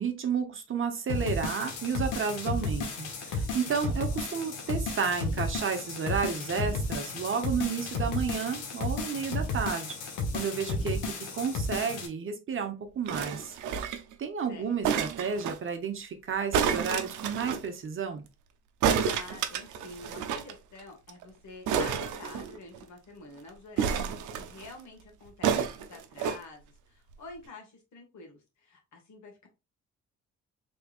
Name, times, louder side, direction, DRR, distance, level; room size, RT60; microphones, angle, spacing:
voice 1, 0.0-10.0 10.3-11.0 11.3-13.5 13.8-13.9 14.2-18.2, right 6 dB, 45° right, 6 dB, 0.8 m, -32 dB
sound 1, 1.1-12.1, left 2 dB, 90° left, 1.0 m, -33 dB
sound 2, 13.1-14.1 14.8-15.6 16.5-17.6 18.8-20.5 20.8-20.9 21.1-21.2 21.7-22.8 23.8-24.7 25.4-26.4 27.1-27.2, right 7 dB, 80° right, 0.6 m, -30 dB
voice 2, 19.0-29.5, left 3 dB, 65° left, 2 dB, 1.6 m, -48 dB
3.5 x 3.3 x 2.3 m, 0.27 s
cardioid pair, 90°, 30 cm